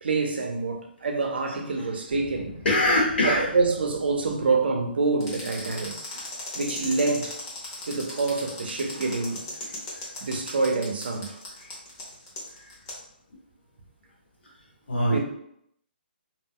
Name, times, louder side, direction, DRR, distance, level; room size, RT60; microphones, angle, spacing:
voice 1, 0.0-2.6 3.2-6.0 6.5-7.4 7.8-9.5 10.2-11.4 15.1-15.2, right 3 dB, 70° right, 0.6 m, -26 dB
Boom, 2.1-5.1, left 1 dB, 5° right, 0.8 m, -45 dB
voice 2, 2.6-3.5 9.9-10.1 11.6-11.8 12.6-12.7 14.9-15.2, left 1 dB, 80° left, 1.2 m, -23 dB
sound 1, 5.2-13.0, left 2 dB, 25° left, 0.8 m, -37 dB
2.4 x 2.1 x 3.5 m
hypercardioid pair, 165°, 6 cm